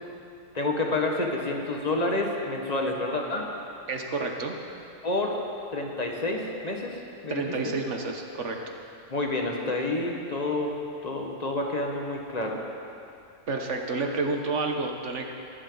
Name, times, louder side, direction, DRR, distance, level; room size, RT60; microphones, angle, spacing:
voice 1, 0.5-3.5 5.0-5.3 5.7-7.4 9.1-10.7 11.0-12.6, left 2 dB, 30° left, 0 dB, 1.7 m, -29 dB
voice 2, 3.9-4.5 7.3-8.6 13.5-15.3, right 3 dB, 65° right, 3 dB, 1.6 m, -30 dB
24.0 x 12.0 x 4.1 m, 2.6 s
omnidirectional pair, 1.3 m